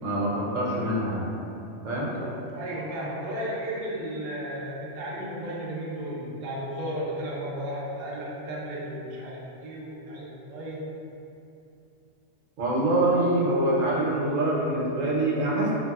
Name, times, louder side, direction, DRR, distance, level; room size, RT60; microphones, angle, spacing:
voice 1, 0.0-1.3 1.8-2.1 12.6-15.7, right 1 dB, 90° right, -5 dB, 1.0 m, -25 dB
voice 2, 2.1-10.9, right 1 dB, 55° right, -5 dB, 0.5 m, -34 dB
3.3 x 2.3 x 2.3 m, 2.7 s
omnidirectional pair, 1.3 m